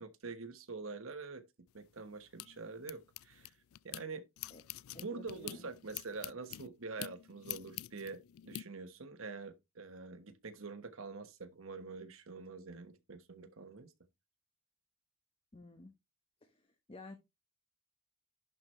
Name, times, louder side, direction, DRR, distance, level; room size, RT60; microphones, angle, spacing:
voice 1, 0.0-1.4 1.7-3.5 3.8-4.2 5.0-13.9, right 4 dB, 75° right, 1.1 m, -46 dB
sound 1, 1.7-4.0 4.4-8.6, left 15 dB, 85° left, 0.3 m, -47 dB
voice 2, 4.9-5.7 15.5-15.9 16.4-17.1, left 2 dB, 30° left, 0.9 m, -53 dB
11.0 x 4.4 x 3.2 m
head